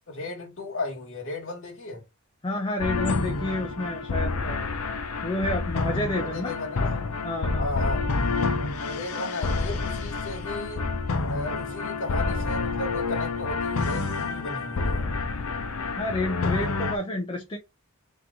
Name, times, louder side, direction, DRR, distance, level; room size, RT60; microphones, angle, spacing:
voice 1, 0.1-2.0 6.2-7.0 7.6-8.1 8.8-10.9 11.3-15.0, left 2 dB, 60° left, 1.5 m, -35 dB
voice 2, 2.4-4.6 5.2-6.6 7.2-7.7 15.9-17.6, left 1 dB, 20° left, 0.7 m, -30 dB
sound 1, 2.8-17.0, left 3 dB, 80° left, 0.6 m, -28 dB
3.7 x 3.1 x 3.5 m
head